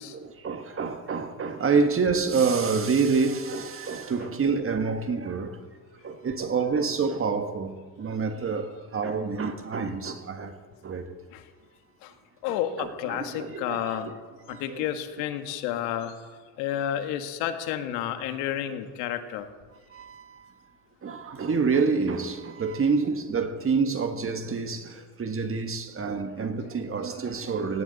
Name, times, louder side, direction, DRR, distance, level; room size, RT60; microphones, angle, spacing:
voice 1, 0.1-5.6 6.0-10.5 10.8-11.2 12.8-14.1 14.5-14.9 19.9-20.5 21.0-27.8, right 5 dB, 25° right, 1.5 m, -27 dB
voice 2, 12.4-14.1 14.5-16.1 16.6-19.5, left 10 dB, 80° left, 1.9 m, -30 dB
18.0 x 17.0 x 4.2 m
supercardioid pair, 115°, 50 cm